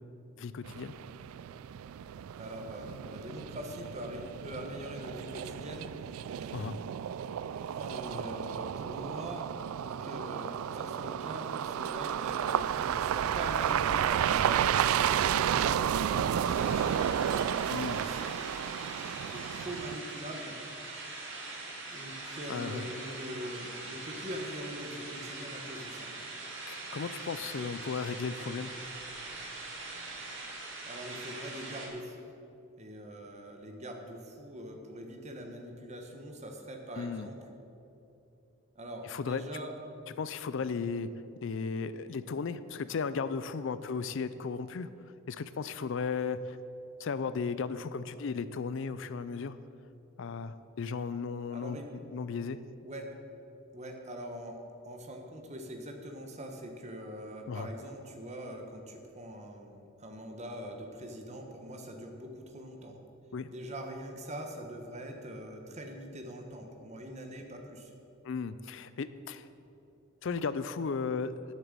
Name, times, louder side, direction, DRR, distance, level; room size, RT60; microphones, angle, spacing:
voice 1, 0.4-1.0 6.5-6.8 17.7-18.0 22.5-22.9 26.7-28.7 37.0-37.3 39.0-39.4 40.2-41.1 41.4-44.9 45.3-46.6 47.0-49.6 50.2-51.8 52.1-52.6 57.5-57.7 63.3-63.5 68.2-69.5 70.2-71.4, left 5 dB, 60° left, 14 dB, 0.4 m, -35 dB
sound 1, 0.7-20.0, right 9 dB, 75° right, 0.3 m, -32 dB
voice 2, 2.4-5.9 7.7-9.5 9.8-18.6 19.3-20.6 21.9-26.1 27.4-27.7 30.8-32.3 32.8-37.4 38.7-39.7 51.5-51.9 52.8-53.1 53.7-63.0 63.5-67.9, equal, 30° right, 4 dB, 1.2 m, -43 dB
sound 2, 16.5-31.9, right 2 dB, 60° right, 2.3 m, -42 dB
10.0 x 7.6 x 7.5 m, 2.8 s
head